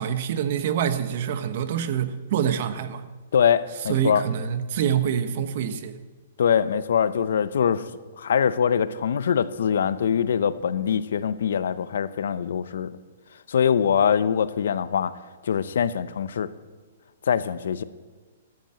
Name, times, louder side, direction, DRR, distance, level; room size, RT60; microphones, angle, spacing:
voice 1, 0.0-3.0 3.9-6.0, right 8 dB, 45° right, 12 dB, 0.9 m, -26 dB
voice 2, 3.3-4.2 6.4-7.8 8.2-13.0 13.5-15.1 15.4-16.5 17.3-17.8, left 7 dB, 70° left, 15 dB, 0.7 m, -23 dB
12.5 x 8.8 x 7.7 m, 1.3 s
hypercardioid pair, 165°, 0 cm